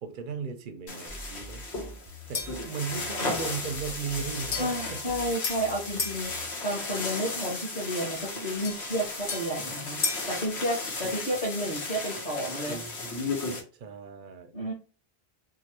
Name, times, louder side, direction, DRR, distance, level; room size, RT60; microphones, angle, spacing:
voice 1, 0.0-1.6 2.3-5.2 11.0-11.2 13.7-14.5, right 6 dB, 60° right, 0.6 m, -36 dB
sound 1, 0.9-13.6, left 3 dB, 85° left, 1.2 m, -35 dB
sound 2, 1.1-6.5, equal, 15° right, 0.5 m, -46 dB
sound 3, 2.3-2.7 4.5-6.2 8.6-10.4, left 4 dB, 70° left, 1.0 m, -35 dB
voice 2, 4.6-10.0 10.3-12.8 14.5-14.7, equal, 40° left, 1.0 m, -31 dB
3.0 x 2.4 x 2.9 m
omnidirectional pair, 1.1 m